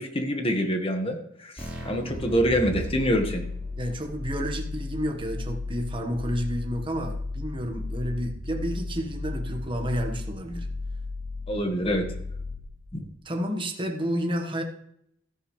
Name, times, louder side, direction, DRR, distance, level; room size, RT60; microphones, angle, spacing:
voice 1, 0.0-3.5 11.5-12.1, equal, 30° left, 4 dB, 1.6 m, -26 dB
sound 1, 1.6-13.0, left 2 dB, 5° right, 3.9 m, -35 dB
voice 2, 3.8-10.7 13.2-14.6, equal, 25° right, 3 dB, 1.4 m, -30 dB
13.5 x 11.0 x 3.3 m, 0.74 s
head